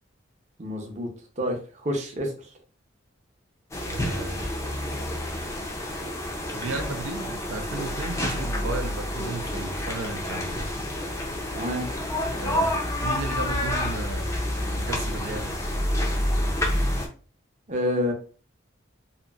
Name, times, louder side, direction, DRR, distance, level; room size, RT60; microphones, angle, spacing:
voice 1, 0.6-1.1 1.4-2.4 11.5-11.9 17.7-18.1, equal, 35° right, 1 dB, 0.6 m, -28 dB
sound 1, 3.7-17.1, left 1 dB, 15° left, 0.4 m, -28 dB
voice 2, 3.9-4.5 6.5-10.7 12.4-14.3 14.7-15.6, right 3 dB, 90° right, 5 dB, 0.5 m, -34 dB
2.8 x 2.5 x 2.3 m, 0.39 s
head